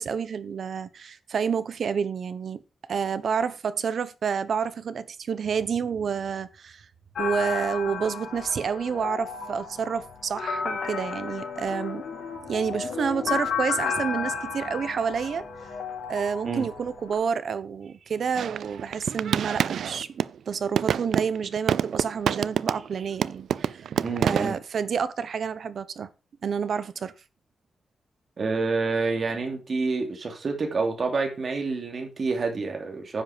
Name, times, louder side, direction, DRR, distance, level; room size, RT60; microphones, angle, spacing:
voice 1, 0.0-2.6 2.9-6.9 7.2-12.1 12.5-15.5 16.1-23.9 24.2-26.1 26.4-27.1, right 6 dB, 55° right, 0.9 m, -29 dB
sound 1, 7.1-17.1, left 6 dB, 80° left, 2.7 m, -33 dB
sound 2, 18.3-20.4 20.8-22.9 23.2-24.6, right 8 dB, 85° right, 0.4 m, -27 dB
voice 2, 24.0-24.6 28.4-33.2, right 4 dB, 40° right, 2.9 m, -28 dB
10.0 x 7.6 x 5.0 m
wide cardioid pair, 160°, 0 cm